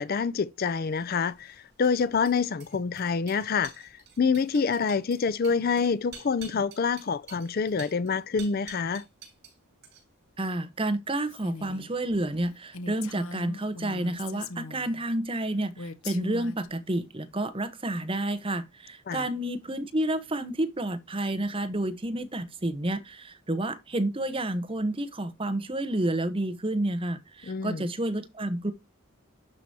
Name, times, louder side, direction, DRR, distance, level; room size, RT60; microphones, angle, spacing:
voice 1, 0.0-9.0 19.1-19.2 27.5-27.8, left 5 dB, 45° left, 0.4 m, -27 dB
sound 1, 1.0-9.6 9.8-10.3, right 6 dB, 50° right, 5.4 m, -49 dB
voice 2, 10.4-28.7, right 1 dB, 25° right, 0.9 m, -30 dB
Female speech woman speaking, 11.3-11.9 12.3-12.4 12.7-15.0 15.8-16.7, left 3 dB, 80° left, 1.0 m, -40 dB
12.0 x 4.9 x 2.7 m
head